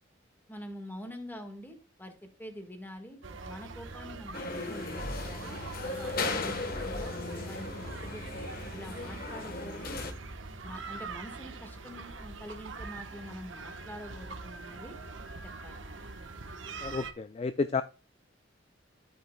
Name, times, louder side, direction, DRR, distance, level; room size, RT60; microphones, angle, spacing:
voice 1, 0.5-3.2 3.4-7.1 7.4-10.0 10.6-15.0 15.4-15.8, equal, 10° left, 5 dB, 1.5 m, -46 dB
sound 1, 3.2-17.1, right 3 dB, 85° right, 1.1 m, -43 dB
sound 2, 4.3-10.1, left 3 dB, 50° left, 1.2 m, -36 dB
voice 2, 16.8-17.8, left 4 dB, 30° left, 11 dB, 0.3 m, -31 dB
11.0 x 8.5 x 2.2 m, 0.33 s
head